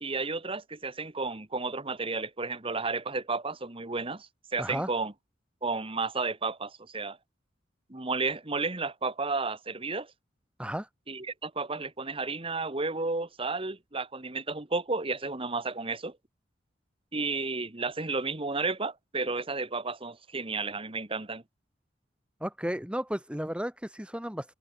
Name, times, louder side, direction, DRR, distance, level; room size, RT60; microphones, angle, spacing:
voice 1, 0.0-5.1 5.6-7.2 7.9-10.1 11.1-16.2 17.1-21.4, right 3 dB, 30° right, 1.7 m, -32 dB
voice 2, 4.6-4.9 10.6-10.9 22.4-24.5, equal, 5° right, 4.8 m, -33 dB
head